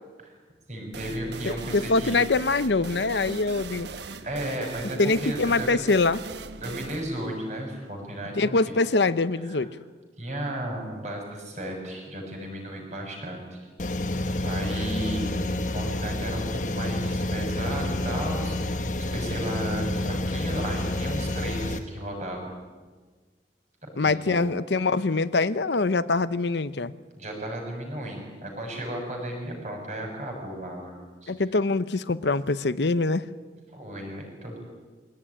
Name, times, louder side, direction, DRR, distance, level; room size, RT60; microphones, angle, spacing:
voice 1, 0.7-2.1 4.2-5.8 6.6-8.6 9.5-9.6 10.2-13.6 14.0-22.5 23.9-24.4 27.2-31.3 33.7-34.6, right 1 dB, 40° right, 1 dB, 7.0 m, -34 dB
sound 1, 0.9-8.4, right 3 dB, 75° right, 1.1 m, -40 dB
voice 2, 1.4-3.9 5.0-6.2 8.4-9.7 24.0-26.9 31.3-33.3, left 3 dB, 80° left, 14 dB, 0.8 m, -24 dB
sound 2, 13.7-17.6 17.9-20.4, left 2 dB, ahead, 2.5 m, -44 dB
sound 3, 13.8-21.8, left 1 dB, 45° left, 1.2 m, -29 dB
23.5 x 17.5 x 10.0 m, 1.4 s
head